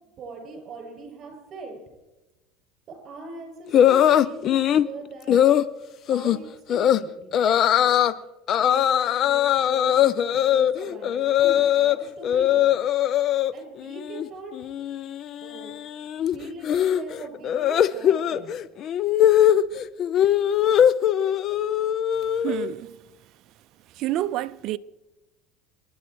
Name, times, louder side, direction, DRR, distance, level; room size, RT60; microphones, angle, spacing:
voice 1, 0.0-1.8 2.9-5.4 6.1-7.4 7.8-8.0 8.5-12.9 13.5-14.5 15.0-15.1 15.4-15.8 16.3-18.6, right 3 dB, 40° right, 7.4 m, -41 dB
sound 1, 3.7-4.9 5.3-5.7 6.1-6.4 6.7-7.0 7.3-8.1 8.5-12.0 12.2-13.5 13.8-14.3 14.5-22.7, left 10 dB, 45° left, 0.6 m, -21 dB
voice 2, 22.3-22.9 23.9-24.8, right 14 dB, 55° right, 0.6 m, -28 dB
27.5 x 11.0 x 4.7 m
supercardioid pair, 115°, 0 cm